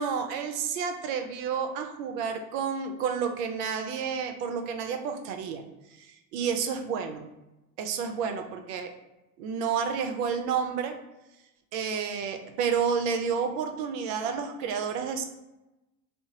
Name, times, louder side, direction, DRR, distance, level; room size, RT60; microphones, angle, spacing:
voice 1, 0.0-5.6 6.0-6.1 6.3-7.2 7.8-8.9 9.4-11.0 11.7-15.2, right 6 dB, 70° right, 6 dB, 0.6 m, -30 dB
2.8 x 2.0 x 2.7 m, 0.96 s
hypercardioid pair, 80°, 49 cm